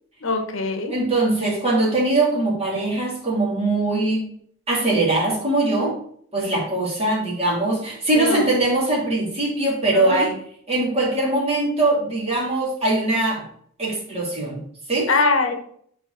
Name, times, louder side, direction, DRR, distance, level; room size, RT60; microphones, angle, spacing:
voice 1, 0.2-0.9 8.1-8.5 9.9-10.3 15.1-15.5, left 3 dB, 60° left, 4 dB, 1.0 m, -22 dB
voice 2, 0.9-4.3 4.7-6.0 6.3-10.4 10.7-13.4 13.8-14.6 14.9-15.1, right 2 dB, 30° right, -4 dB, 2.6 m, -21 dB
5.3 x 4.4 x 6.2 m, 0.63 s
head